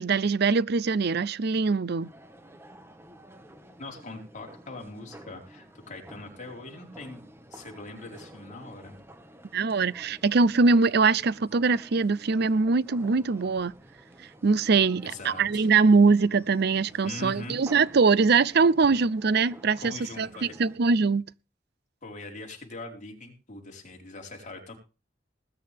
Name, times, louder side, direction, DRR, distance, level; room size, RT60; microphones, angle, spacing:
voice 1, 0.0-2.1 9.5-13.7 14.4-20.3 20.6-21.2, right 4 dB, 60° right, 0.6 m, -22 dB
sound 1, 2.0-20.8, right 1 dB, 15° right, 1.6 m, -50 dB
voice 2, 3.8-7.2 7.5-9.0 15.0-15.7 17.0-17.6 19.8-20.6 22.0-24.8, left 2 dB, 40° left, 4.8 m, -42 dB
20.0 x 9.8 x 3.5 m
head